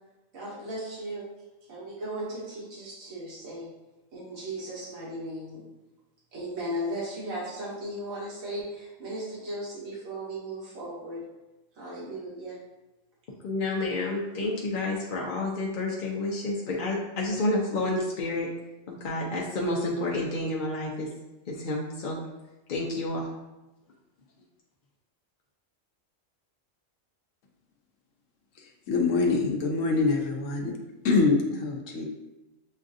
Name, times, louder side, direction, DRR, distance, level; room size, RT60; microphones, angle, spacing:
voice 1, 0.3-1.3 1.7-3.7 4.1-5.6 6.3-11.2 11.7-12.6, right 1 dB, 90° right, -7 dB, 1.7 m, -36 dB
voice 2, 13.4-18.5 18.9-21.1 21.5-22.2 22.7-23.3, left 2 dB, 50° left, -3 dB, 0.6 m, -29 dB
voice 3, 28.9-30.7 31.0-32.1, left 3 dB, 70° left, 2 dB, 1.0 m, -24 dB
7.3 x 2.5 x 2.5 m, 1.0 s
omnidirectional pair, 1.4 m